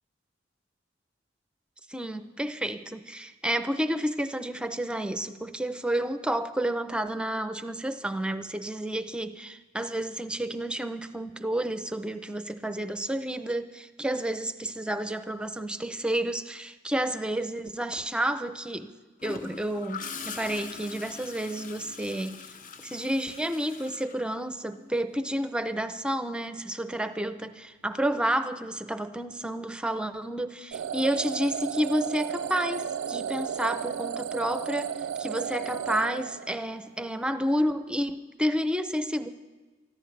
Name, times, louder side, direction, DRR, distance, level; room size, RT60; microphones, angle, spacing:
voice 1, 1.9-18.9 19.2-22.4 22.8-39.3, right 1 dB, 5° right, 10 dB, 0.5 m, -30 dB
Gurgling / Toilet flush, 19.2-24.9 26.9-27.2, left 5 dB, 45° left, 0.6 m, -42 dB
sound 1, 30.7-36.8, right 8 dB, 80° right, 0.4 m, -34 dB
24.0 x 14.0 x 3.3 m, 1.3 s
head